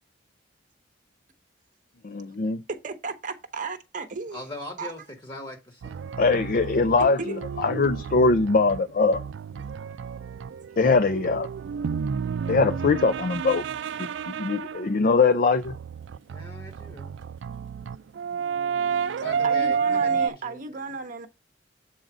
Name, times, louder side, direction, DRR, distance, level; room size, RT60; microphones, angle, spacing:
voice 1, 2.0-2.6 6.2-9.2 10.8-11.5 12.5-13.6 14.0-15.7, left 4 dB, 50° left, 0.4 m, -22 dB
voice 2, 2.8-4.4 4.8-4.9 19.4-21.3, right 4 dB, 45° right, 0.9 m, -34 dB
voice 3, 4.3-6.1 16.3-17.1 19.2-20.9, left 2 dB, 25° left, 1.3 m, -41 dB
sound 1, 5.8-14.9 15.6-20.3, right 6 dB, 75° right, 0.4 m, -30 dB
7.6 x 3.9 x 6.0 m
head